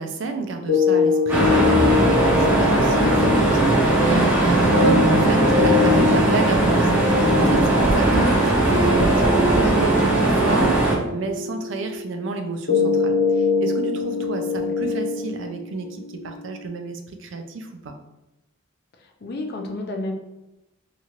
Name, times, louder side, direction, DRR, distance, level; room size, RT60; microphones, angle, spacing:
voice 1, 0.0-18.0, right 3 dB, 65° right, 5 dB, 0.4 m, -30 dB
sound 1, 0.7-16.7, left 6 dB, 65° left, 0.9 m, -24 dB
sound 2, 1.3-11.0, right 2 dB, 10° right, 0.5 m, -18 dB
voice 2, 19.0-20.1, left 2 dB, 50° left, 3 dB, 0.4 m, -32 dB
2.9 x 2.4 x 2.9 m, 0.95 s
head